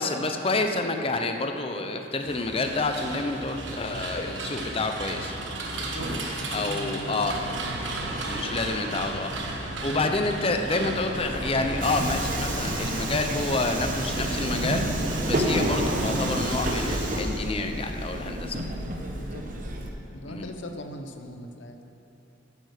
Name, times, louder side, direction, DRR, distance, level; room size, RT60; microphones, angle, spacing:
voice 1, 0.0-5.4 6.5-7.4 8.3-14.9 15.3-18.6 20.3-20.5, left 3 dB, 30° left, 5 dB, 0.6 m, -28 dB
sound 1, 2.2-17.0, right 1 dB, 75° right, 1.3 m, -34 dB
voice 2, 5.8-6.1 6.4-8.3 19.1-19.4 20.1-21.8, left 1 dB, 75° left, 5 dB, 0.9 m, -40 dB
Subway metro underground, 11.1-19.9, right 1 dB, 45° right, 1.0 m, -30 dB
9.7 x 8.7 x 6.6 m, 2.8 s
head